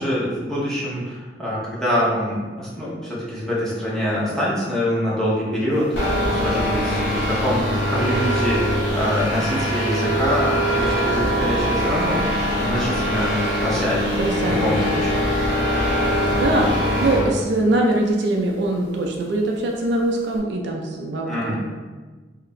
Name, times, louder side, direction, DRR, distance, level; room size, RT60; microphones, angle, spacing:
voice 1, 0.0-14.1 14.4-15.1 21.3-21.6, equal, 5° left, -8 dB, 0.7 m, -25 dB
sound 1, 5.9-17.3, equal, 85° left, 1.0 m, -22 dB
voice 2, 14.2-15.0 16.3-16.7 17.0-21.6, right 2 dB, 65° right, 0 dB, 0.4 m, -22 dB
2.8 x 2.4 x 3.1 m, 1.3 s
head